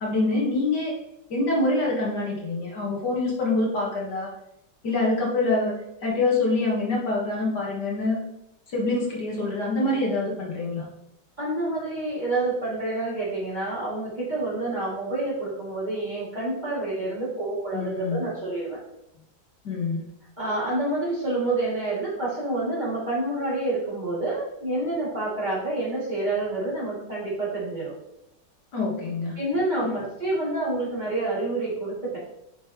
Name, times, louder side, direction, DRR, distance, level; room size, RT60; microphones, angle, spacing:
voice 1, 0.0-0.9 1.3-4.3 4.8-5.7 6.0-8.2 8.7-10.8 17.7-18.2 19.6-20.0 28.7-29.4 29.8-29.9, left 2 dB, 60° left, -3 dB, 2.0 m, -25 dB
voice 2, 11.4-18.8 20.4-27.9 29.4-32.2, right 2 dB, 20° right, -8 dB, 2.6 m, -28 dB
8.3 x 5.3 x 3.0 m, 0.84 s
omnidirectional pair, 2.1 m